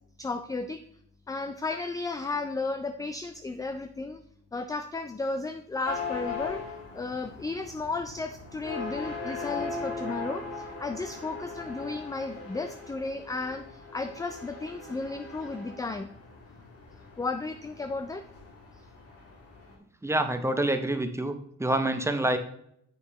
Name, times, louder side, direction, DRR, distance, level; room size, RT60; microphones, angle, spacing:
voice 1, 0.2-0.8 1.3-4.2 4.5-6.6 6.9-16.1 17.2-18.3, left 3 dB, 10° left, 9 dB, 0.4 m, -34 dB
sound 1, 5.8-19.7, left 3 dB, 50° left, 1.7 m, -39 dB
voice 2, 20.0-22.4, right 1 dB, 10° right, 7 dB, 0.7 m, -27 dB
7.5 x 6.4 x 3.0 m, 0.71 s
cardioid pair, 90°, 30 cm